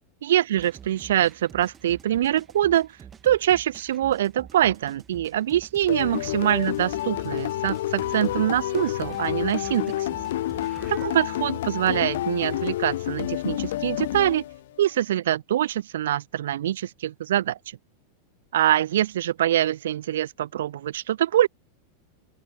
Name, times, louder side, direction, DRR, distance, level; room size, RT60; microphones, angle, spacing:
voice 1, 0.2-2.9 3.2-10.1 10.9-14.4 14.8-17.6 18.5-21.5, right 12 dB, 60° right, 0.7 m, -24 dB
sound 1, 0.6-11.1, right 7 dB, 20° right, 1.9 m, -47 dB
sound 2, 5.9-14.8, left 14 dB, 55° left, 1.0 m, -29 dB
open air
figure-of-eight pair, 90°, 0 cm